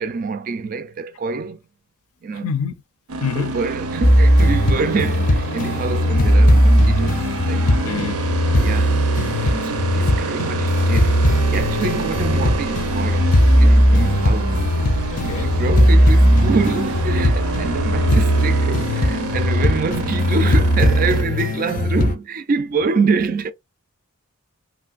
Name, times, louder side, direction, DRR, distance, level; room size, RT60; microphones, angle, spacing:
voice 1, 0.0-1.6 2.2-2.5 3.2-7.7 8.6-9.1 9.3-14.7 15.2-23.5, right 4 dB, 40° right, 0.3 m, -26 dB
voice 2, 2.3-2.7 3.2-3.6 7.8-8.2 15.1-15.6, left 6 dB, 90° left, 0.5 m, -26 dB
sound 1, 3.1-21.2, right 3 dB, 80° right, 0.6 m, -27 dB
sound 2, 4.0-22.1, equal, 35° left, 0.4 m, -17 dB
3.2 x 2.5 x 2.4 m
head